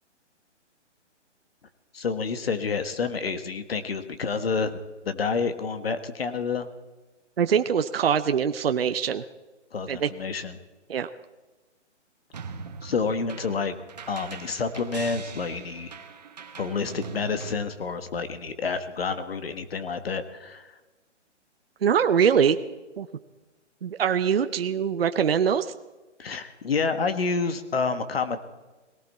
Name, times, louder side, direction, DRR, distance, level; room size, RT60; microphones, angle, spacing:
voice 1, 1.9-4.8 5.0-6.7 9.7-10.6 12.8-13.7 14.1-15.9 16.6-20.7 26.2-28.4, left 5 dB, 55° left, 10 dB, 1.5 m, -29 dB
voice 2, 7.4-9.2 9.9-10.1 10.9-11.1 21.8-22.6 23.0-23.1 23.8-25.7, right 7 dB, 55° right, 10 dB, 0.7 m, -23 dB
sound 1, 12.3-17.5, right 5 dB, 35° right, 1.1 m, -41 dB
18.5 x 17.0 x 4.2 m, 1.2 s
hypercardioid pair, 175°, 36 cm